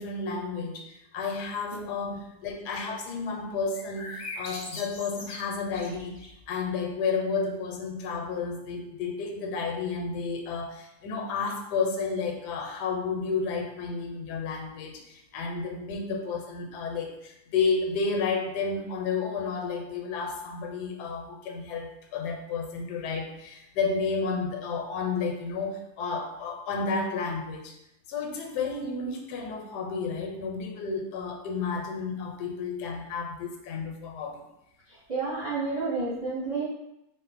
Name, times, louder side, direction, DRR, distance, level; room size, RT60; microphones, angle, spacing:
voice 1, 0.0-27.7 28.1-34.4, left 4 dB, 85° left, 3 dB, 1.2 m, -31 dB
voice 2, 1.7-2.1 35.1-36.6, right 3 dB, 50° right, -6 dB, 0.5 m, -31 dB
sound 1, 3.7-6.4, left 2 dB, 55° left, 0.6 m, -40 dB
4.0 x 2.0 x 4.1 m, 0.84 s
omnidirectional pair, 1.8 m